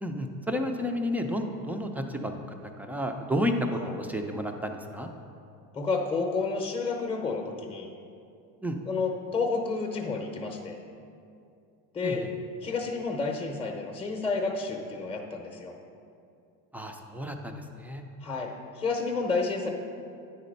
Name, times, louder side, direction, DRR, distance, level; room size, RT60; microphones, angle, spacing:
voice 1, 0.0-2.4 2.8-5.1 8.6-8.8 12.0-12.3 16.7-18.0, equal, 5° right, 4 dB, 0.3 m, -31 dB
voice 2, 5.7-7.9 8.9-10.8 11.9-12.3 12.6-15.7 18.2-19.7, left 4 dB, 15° left, 2 dB, 0.7 m, -30 dB
9.8 x 4.2 x 5.2 m, 2.5 s
supercardioid pair, 110°, 41 cm